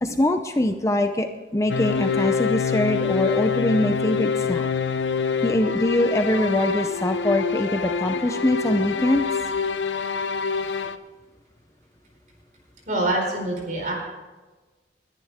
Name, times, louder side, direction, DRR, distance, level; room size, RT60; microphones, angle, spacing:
voice 1, 0.0-4.7 5.4-9.3, left 1 dB, 15° left, 7 dB, 0.6 m, -23 dB
sound 1, 1.7-11.0, left 6 dB, 85° left, 0.7 m, -26 dB
voice 2, 12.9-13.9, right 1 dB, 45° right, 0 dB, 4.6 m, -25 dB
21.0 x 10.5 x 3.6 m, 1.2 s
head